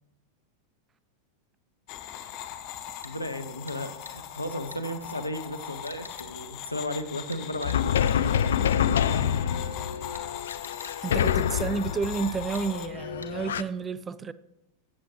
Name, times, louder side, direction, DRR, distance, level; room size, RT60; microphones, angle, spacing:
sound 1, 1.9-12.9, left 10 dB, 45° left, 0.8 m, -40 dB
voice 1, 3.0-8.5, left 1 dB, 85° left, 0.8 m, -35 dB
sound 2, 3.0-3.2 3.7-3.8 4.0-4.2 4.7-4.8 5.9-6.3 7.3-7.8 8.1-8.2 10.1-11.0 12.5-12.7 13.2-13.3, left 1 dB, 85° right, 1.2 m, -45 dB
sound 3, 7.6-13.6, left 9 dB, 65° left, 0.3 m, -27 dB
voice 2, 9.1-9.5 11.0-14.3, right 5 dB, 20° right, 0.4 m, -31 dB
16.5 x 7.6 x 3.2 m
figure-of-eight pair, 90°, 0 cm